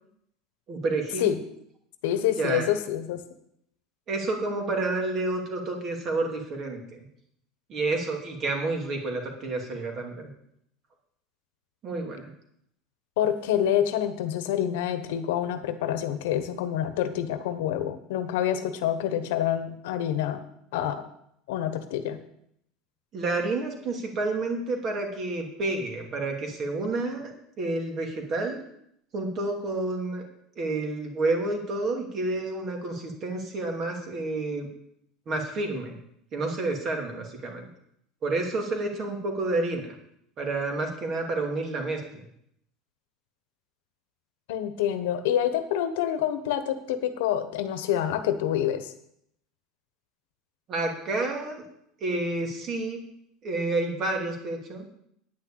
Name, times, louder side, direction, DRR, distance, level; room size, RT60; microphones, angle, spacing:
voice 1, 0.7-1.3 2.4-2.7 4.1-7.0 7.7-10.3 11.8-12.3 23.1-27.3 27.6-28.6 29.1-30.2 30.6-34.7 35.3-36.0 36.3-37.7 38.2-39.9 40.4-42.2 50.7-51.6 52.0-53.0 53.4-54.8, right 2 dB, 35° right, 2 dB, 2.7 m, -29 dB
voice 2, 2.0-3.2 13.2-20.4 20.7-21.0 21.5-22.2 44.5-48.9, left 10 dB, 85° left, 10 dB, 1.2 m, -27 dB
9.5 x 6.3 x 8.6 m, 0.73 s
supercardioid pair, 145°, 0 cm